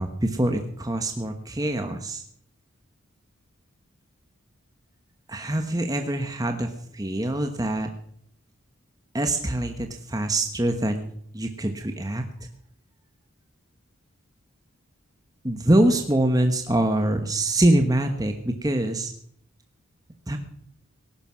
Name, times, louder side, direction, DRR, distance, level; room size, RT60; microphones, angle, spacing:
voice 1, 0.0-2.2 5.3-7.9 9.1-12.3 15.4-19.1 20.3-20.4, right 1 dB, 15° right, 5 dB, 1.1 m, -24 dB
19.0 x 11.5 x 6.2 m, 0.66 s
head